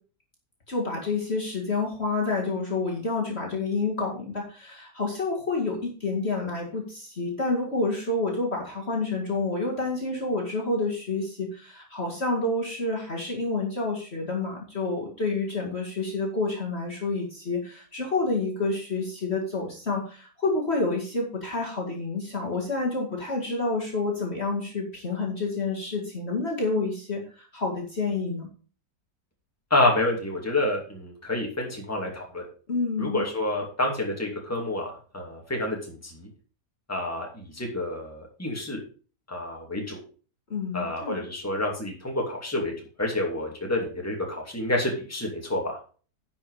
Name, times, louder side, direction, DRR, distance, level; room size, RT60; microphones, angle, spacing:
voice 1, 0.7-28.5 32.7-33.2 40.5-41.2, left 3 dB, 40° left, -1 dB, 2.4 m, -29 dB
voice 2, 29.7-32.4 33.0-36.3 36.9-38.8 39.3-40.0 40.7-42.7 43.0-45.8, left 1 dB, 10° left, 0 dB, 2.5 m, -28 dB
10.5 x 5.9 x 4.9 m, 0.39 s
omnidirectional pair, 1.8 m